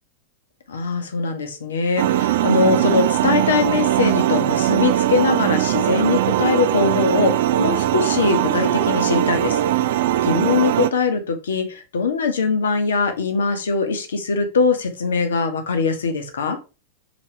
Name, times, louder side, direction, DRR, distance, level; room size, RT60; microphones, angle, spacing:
voice 1, 0.7-9.6 9.9-16.6, left 5 dB, 65° left, 6 dB, 1.2 m, -22 dB
sound 1, 2.0-10.9, right 13 dB, 55° right, 0.4 m, -20 dB
6.3 x 4.0 x 4.4 m, 0.31 s
figure-of-eight pair, 90°, 0 cm